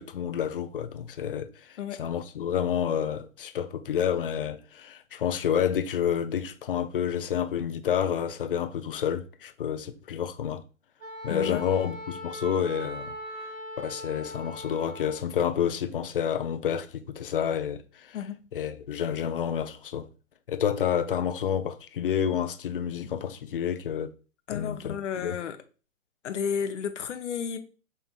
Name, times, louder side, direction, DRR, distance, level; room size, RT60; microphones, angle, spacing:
voice 1, 0.0-10.6 11.2-13.2 13.8-18.2 18.5-20.1 20.5-24.1 24.5-25.3, left 8 dB, 45° left, 0.5 m, -29 dB
Wind instrument woodwind instrument, 11.0-15.3, equal, 15° right, 0.6 m, -40 dB
voice 2, 11.3-11.6 18.1-18.4 24.5-25.6 26.2-27.6, left 7 dB, 60° left, 0.8 m, -32 dB
5.5 x 3.3 x 2.4 m
hypercardioid pair, 140°, 40 cm